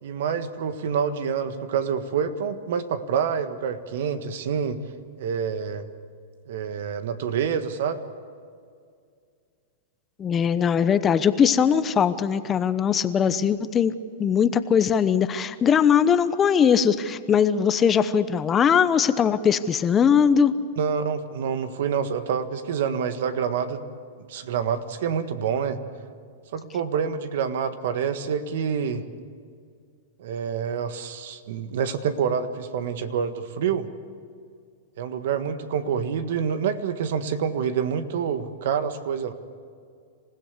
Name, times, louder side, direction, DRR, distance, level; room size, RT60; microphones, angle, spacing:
voice 1, 0.0-4.8 5.2-5.8 6.5-8.0 20.8-23.8 24.3-25.8 26.5-29.0 30.2-33.9 35.0-39.3, right 7 dB, 70° right, 10 dB, 1.6 m, -27 dB
voice 2, 10.2-13.9 14.2-20.5, left 7 dB, 20° left, 13 dB, 0.9 m, -20 dB
27.0 x 16.0 x 8.3 m, 2.2 s
hypercardioid pair, 130°, 0 cm